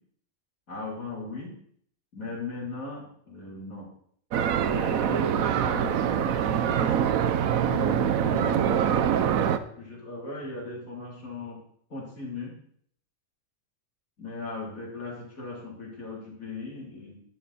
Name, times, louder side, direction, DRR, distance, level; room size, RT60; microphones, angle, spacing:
voice 1, 0.7-1.5 2.1-3.9 4.6-6.9 7.5-9.0 9.8-11.6 11.9-12.5 14.2-17.2, left 3 dB, 85° left, -3 dB, 4.3 m, -38 dB
sound 1, 4.3-9.6, right 9 dB, 85° right, 1.2 m, -24 dB
12.5 x 12.0 x 4.3 m, 0.63 s
omnidirectional pair, 1.4 m